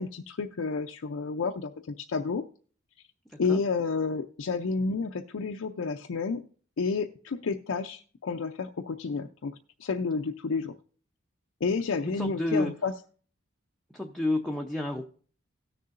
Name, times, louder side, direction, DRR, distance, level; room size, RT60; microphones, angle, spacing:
voice 1, 0.0-1.7 2.0-2.4 3.4-6.4 6.8-9.5 9.8-10.7 11.6-12.9, left 4 dB, 70° left, 5 dB, 0.5 m, -30 dB
voice 2, 3.3-3.6 12.0-12.7 13.9-15.0, left 2 dB, ahead, 0 dB, 0.6 m, -30 dB
17.5 x 6.6 x 2.5 m, 0.43 s
head